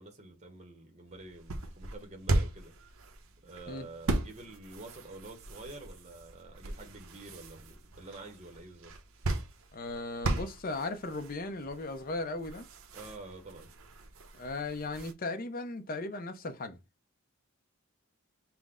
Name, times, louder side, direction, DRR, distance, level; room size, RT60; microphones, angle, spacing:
voice 1, 0.0-2.7 3.4-8.9 12.9-13.7, right 2 dB, 30° right, 0.8 m, -48 dB
sound 1, 1.1-15.1, right 2 dB, 80° right, 0.7 m, -38 dB
voice 2, 9.7-12.7 14.3-16.8, left 2 dB, 40° left, 0.5 m, -37 dB
5.7 x 2.1 x 3.6 m
head